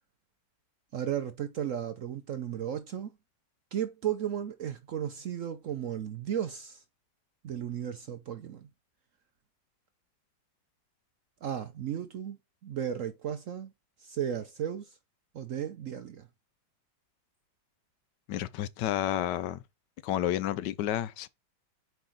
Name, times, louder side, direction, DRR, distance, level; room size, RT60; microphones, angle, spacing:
voice 1, 0.9-3.1 3.7-6.8 7.4-8.7 11.4-12.4 12.6-13.7 14.0-15.0 15.3-16.3, right 9 dB, 65° right, 0.8 m, -34 dB
voice 2, 18.3-19.6 20.0-21.3, left 12 dB, 75° left, 1.2 m, -30 dB
7.8 x 4.7 x 3.9 m
omnidirectional pair, 2.0 m